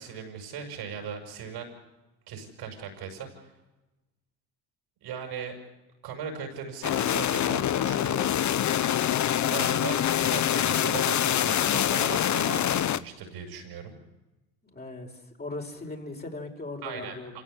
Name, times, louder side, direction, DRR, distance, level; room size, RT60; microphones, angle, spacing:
voice 1, 0.0-1.7 2.3-3.5 5.0-5.6 6.0-8.3 9.5-14.0 16.8-17.4, right 7 dB, 65° right, 4 dB, 6.7 m, -38 dB
sound 1, 6.8-13.0, left 11 dB, 45° left, 1.0 m, -25 dB
sound 2, 6.9-7.2 9.4-10.0 12.0-12.6, left 6 dB, 75° left, 2.4 m, -41 dB
voice 2, 14.7-15.1 15.4-17.4, left 2 dB, 25° left, 1 dB, 5.5 m, -38 dB
27.5 x 17.0 x 8.2 m, 1.1 s
hypercardioid pair, 65°, 42 cm